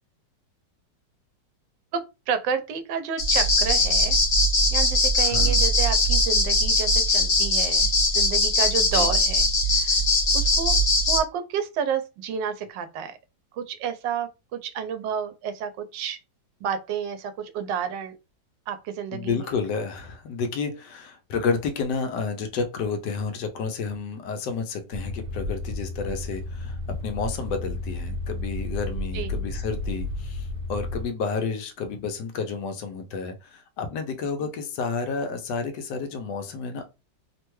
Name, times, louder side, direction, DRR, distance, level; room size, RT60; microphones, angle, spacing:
voice 1, 1.9-4.2 4.7-9.4 9.7-10.0 10.3-10.8 11.1-13.2 13.5-16.2 16.6-18.1 18.7-19.5 29.1-29.3 34.4-34.5, right 7 dB, 85° right, 1.3 m, -30 dB
sound 1, 3.2-11.2, left 1 dB, 50° left, 0.6 m, -21 dB
voice 2, 5.2-5.6 8.8-9.1 19.1-36.8, left 5 dB, 75° left, 1.2 m, -30 dB
sound 2, 24.9-31.1, left 2 dB, 70° right, 1.1 m, -32 dB
3.2 x 2.2 x 3.0 m
omnidirectional pair, 1.9 m